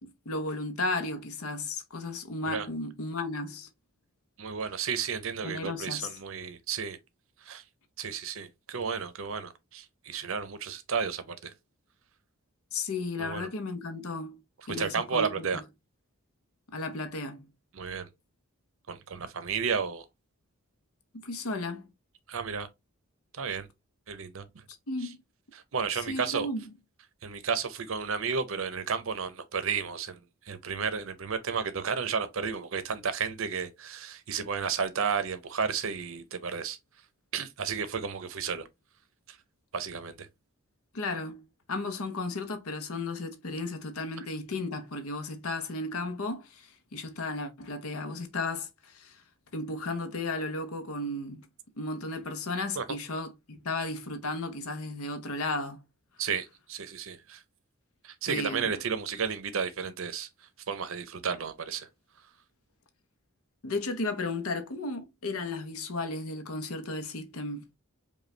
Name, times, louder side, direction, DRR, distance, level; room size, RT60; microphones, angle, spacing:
voice 1, 0.0-3.7 5.4-6.2 12.7-14.4 14.7-15.6 16.7-17.5 21.1-21.9 24.9-25.2 25.9-26.7 40.9-49.2 49.5-51.5 51.8-55.8 58.3-58.7 63.6-67.6, left 2 dB, 80° left, 0.8 m, -34 dB
voice 2, 4.4-7.0 7.4-7.6 8.0-11.5 13.2-13.5 14.8-15.6 17.7-18.1 18.9-20.0 22.3-22.7 23.3-23.7 24.1-24.6 25.7-26.5 27.2-30.2 30.4-36.8 37.3-38.7 39.3-39.4 39.7-40.3 52.8-52.9 56.2-57.4 58.0-60.3 60.7-61.9, right 6 dB, 65° right, 0.6 m, -32 dB
5.1 x 2.3 x 3.2 m
head